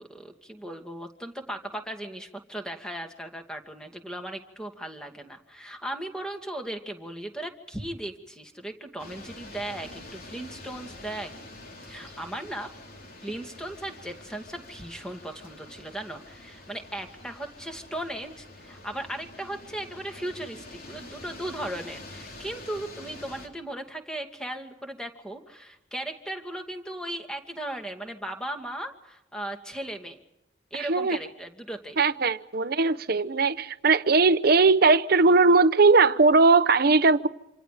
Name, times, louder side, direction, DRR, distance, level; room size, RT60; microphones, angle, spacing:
voice 1, 0.0-11.3 11.8-12.7 13.2-30.2 30.7-32.0, right 1 dB, 5° left, 2.4 m, -37 dB
sound 1, 9.0-23.5, left 2 dB, 55° left, 3.7 m, -46 dB
voice 2, 30.8-31.2 32.0-37.3, right 3 dB, 55° right, 0.9 m, -19 dB
27.5 x 27.5 x 5.1 m
head